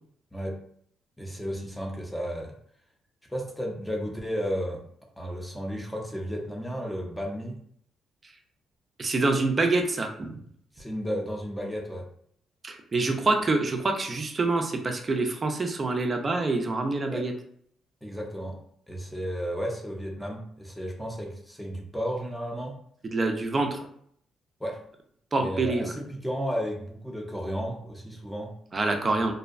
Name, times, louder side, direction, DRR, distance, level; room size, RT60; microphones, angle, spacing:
voice 1, 1.2-2.5 3.3-4.8 5.2-7.5 10.7-12.1 17.1-17.2 18.0-18.6 18.9-22.8 24.6-24.8 25.4-28.5, equal, 5° left, 0 dB, 0.6 m, -33 dB
voice 2, 9.0-10.4 12.6-17.3 23.0-23.8 25.3-25.9 28.7-29.3, right 3 dB, 35° right, 4 dB, 0.5 m, -26 dB
2.6 x 2.1 x 2.4 m, 0.65 s
cardioid pair, 90°, 0 cm